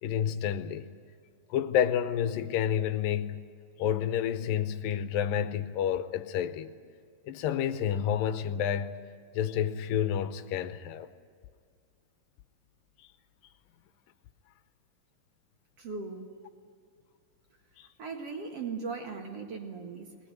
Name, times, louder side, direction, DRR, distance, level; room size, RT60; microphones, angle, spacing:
voice 1, 0.0-0.9 1.5-3.5 3.8-6.7 7.3-9.0 9.3-11.1 17.8-17.9, left 9 dB, 85° left, 2.5 m, -29 dB
voice 2, 15.8-16.3 18.0-20.2, right 4 dB, 50° right, 2.5 m, -38 dB
20.0 x 19.5 x 9.3 m
omnidirectional pair, 4.0 m